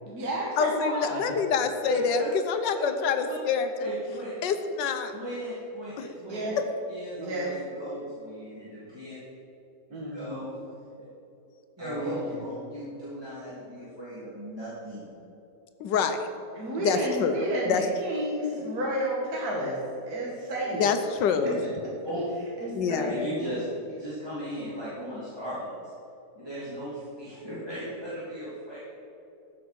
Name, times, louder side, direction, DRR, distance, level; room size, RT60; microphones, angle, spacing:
voice 1, 0.0-1.4 6.3-6.5 7.2-7.5 9.9-10.5 11.8-12.4 16.5-19.8 20.0-20.8 22.6-23.3 27.5-27.6, right 1 dB, 60° right, -3 dB, 2.2 m, -31 dB
voice 2, 0.6-3.9 4.4-5.1 6.0-6.1 15.8-16.3 16.8-17.4 17.7-17.8 20.8-21.6 22.7-23.2, left 6 dB, 85° left, 8 dB, 1.5 m, -26 dB
voice 3, 1.9-2.3 2.7-2.8 3.3-3.4 3.8-4.3 5.1-6.4 6.9-9.2 9.9-10.5 11.8-15.1 21.4-21.6 22.0-22.2 22.8-25.7 26.3-28.8, equal, 15° right, -10 dB, 2.8 m, -36 dB
14.5 x 6.3 x 6.2 m, 2.9 s
omnidirectional pair, 1.9 m